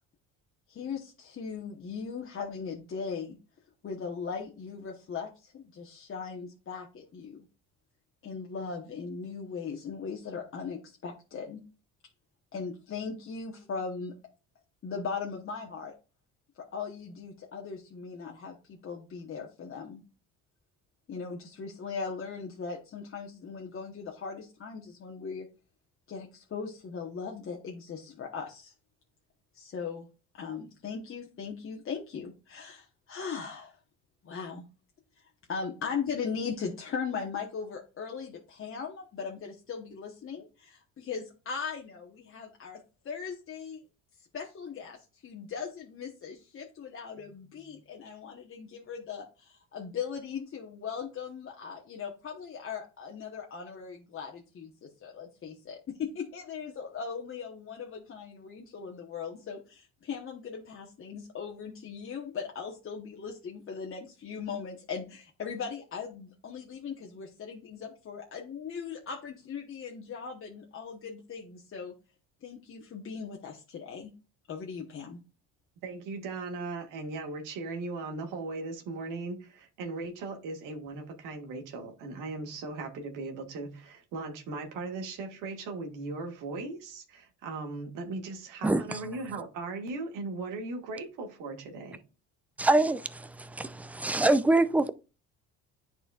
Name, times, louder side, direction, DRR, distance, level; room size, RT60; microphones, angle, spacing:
voice 1, 0.7-3.4 3.8-7.5 8.2-11.6 12.5-14.1 14.8-15.9 16.6-20.0 21.1-25.5 26.1-28.7 29.5-30.1 30.3-33.8 34.2-34.6 35.2-43.8 44.2-71.9 72.4-74.1 74.5-75.2, left 6 dB, 40° left, 1.1 m, -39 dB
voice 2, 75.8-92.0, right 3 dB, 75° right, 1.7 m, -38 dB
voice 3, 92.6-94.9, right 2 dB, 5° right, 0.4 m, -25 dB
10.0 x 4.3 x 2.4 m
supercardioid pair, 90°, 32 cm